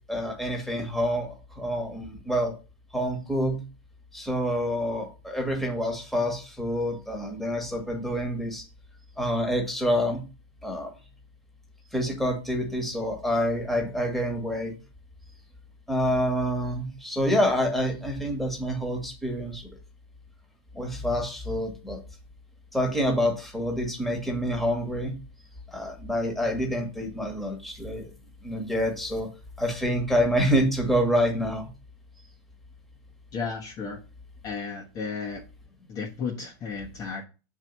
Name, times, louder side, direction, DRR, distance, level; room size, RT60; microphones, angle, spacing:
voice 1, 0.1-2.5 2.9-3.6 4.1-8.6 9.2-10.2 10.6-10.9 11.9-14.8 15.9-19.7 20.7-22.0 22.7-25.2 25.7-28.1 28.4-29.3 29.6-31.7, equal, ahead, 1.7 m, -27 dB
voice 2, 33.3-34.0 34.4-35.4 35.9-37.2, left 5 dB, 25° left, 1.2 m, -33 dB
7.2 x 4.7 x 5.4 m
supercardioid pair, 155°, 13 cm